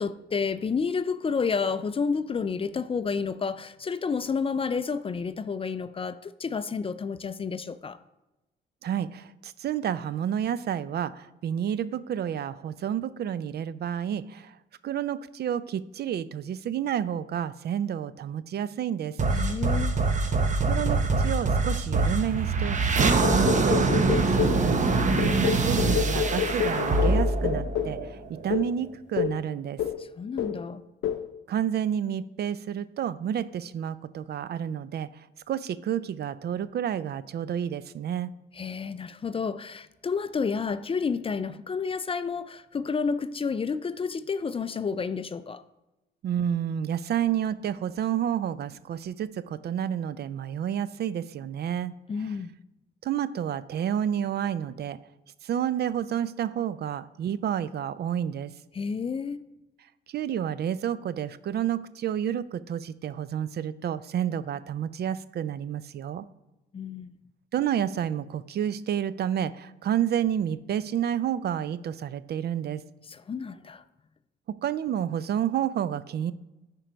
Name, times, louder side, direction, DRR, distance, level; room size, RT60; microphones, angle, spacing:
voice 1, 0.0-8.0 19.3-20.0 30.0-30.8 38.5-45.6 52.1-52.5 58.7-59.4 66.7-67.1 73.1-73.8, left 5 dB, 30° left, 0.4 m, -30 dB
voice 2, 8.8-14.5 14.8-19.2 20.7-23.1 23.5-24.2 24.6-24.8 25.1-28.2 28.4-29.8 31.5-35.1 35.5-38.3 46.2-51.9 52.2-52.4 53.0-55.0 55.4-58.5 60.1-66.3 67.5-72.8 74.5-76.3, right 9 dB, 55° right, 0.4 m, -30 dB
sound 1, 19.2-28.5, right 3 dB, 40° right, 1.0 m, -24 dB
sound 2, 23.2-24.7 25.2-28.0 28.5-28.7 29.2-29.4 29.8-30.1 30.4-30.7 31.0-31.3, left 10 dB, 80° left, 0.6 m, -29 dB
9.5 x 4.5 x 5.1 m
cardioid pair, 90°, 20 cm